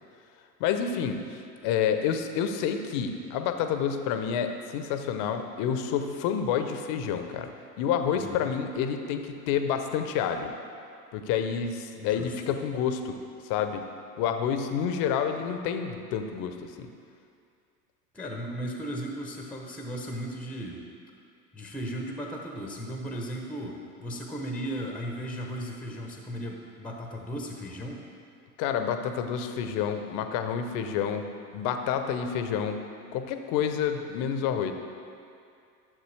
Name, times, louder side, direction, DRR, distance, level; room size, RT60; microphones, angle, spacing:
voice 1, 0.6-7.5 7.8-10.5 11.1-13.2 13.4-13.9 14.2-16.9 28.6-31.2 31.5-32.8 33.1-34.7, left 8 dB, 40° left, 7 dB, 0.8 m, -29 dB
voice 2, 8.2-8.5 12.0-12.6 18.1-20.8 21.5-28.0, equal, ahead, 1 dB, 0.8 m, -36 dB
12.0 x 7.2 x 3.3 m, 2.4 s
figure-of-eight pair, 85°, 50 cm